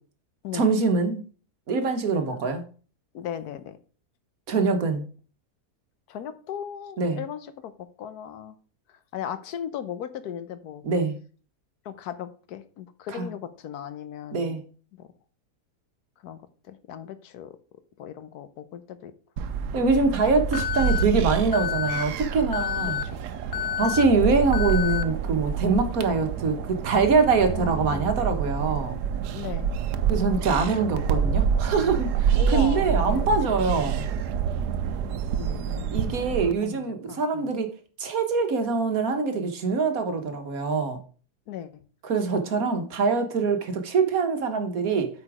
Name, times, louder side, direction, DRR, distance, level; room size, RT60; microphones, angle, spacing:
voice 1, 0.5-1.2 1.7-2.6 4.5-5.0 7.0-7.2 10.8-11.1 13.1-13.3 14.3-14.6 19.7-23.0 23.8-29.0 30.1-34.1 35.9-37.7 38.0-41.0 42.0-45.1, right 4 dB, 65° right, 7 dB, 1.6 m, -24 dB
voice 2, 3.1-3.8 6.1-8.6 8.9-10.8 11.8-14.6 14.9-15.1 16.2-16.4 16.7-17.6 18.0-19.1 23.0-23.2 27.5-28.1 29.3-29.7 32.3-33.3 35.3-36.1 36.6-37.5 41.5-41.8, left 9 dB, 75° left, 12 dB, 1.2 m, -37 dB
sound 1, 19.4-36.5, right 7 dB, 90° right, 1.3 m, -27 dB
Alarm, 20.5-21.0 21.5-22.0 22.5-23.0 23.5-24.0 24.5-25.0, left 10 dB, 60° left, 0.6 m, -29 dB
8.3 x 5.0 x 4.8 m, 0.39 s
omnidirectional pair, 1.7 m